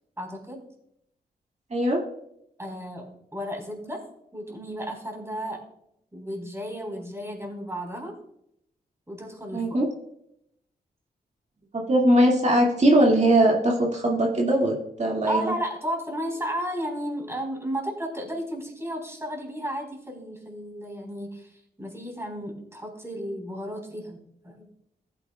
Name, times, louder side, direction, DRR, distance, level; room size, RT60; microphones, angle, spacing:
voice 1, 0.2-0.6 2.6-4.0 4.3-5.6 6.1-8.1 9.1-9.8 14.0-14.2 15.1-24.6, equal, 15° right, 1 dB, 4.1 m, -33 dB
voice 2, 1.7-2.0 9.5-9.9 11.7-15.5, right 1 dB, 45° right, -1 dB, 2.0 m, -21 dB
15.0 x 8.9 x 2.3 m, 0.76 s
cardioid pair, 60°, 16 cm